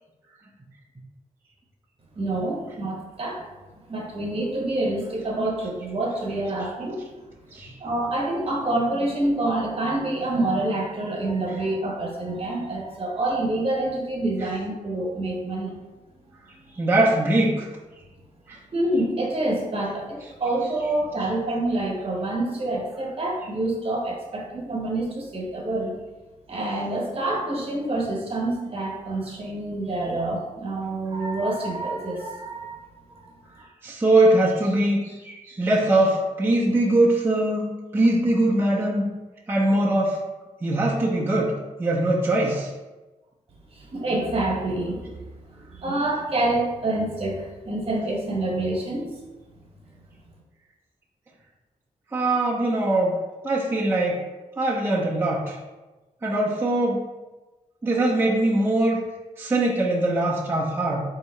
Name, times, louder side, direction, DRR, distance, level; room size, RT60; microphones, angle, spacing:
voice 1, 2.2-3.4 3.9-7.0 7.8-15.8 18.7-25.9 26.5-32.9 33.2-33.6 43.7-45.3 45.7-49.1, right 2 dB, 45° right, -1 dB, 1.1 m, -27 dB
voice 2, 16.7-17.7 18.5-18.6 33.8-39.1 39.5-40.2 40.6-41.5 41.8-42.7 52.1-53.1 53.4-54.2 54.6-55.6 56.2-57.0 57.8-59.0 59.4-61.0, right 1 dB, 15° right, -5 dB, 0.6 m, -22 dB
3.6 x 2.8 x 4.4 m, 1.1 s
wide cardioid pair, 105°, 14 cm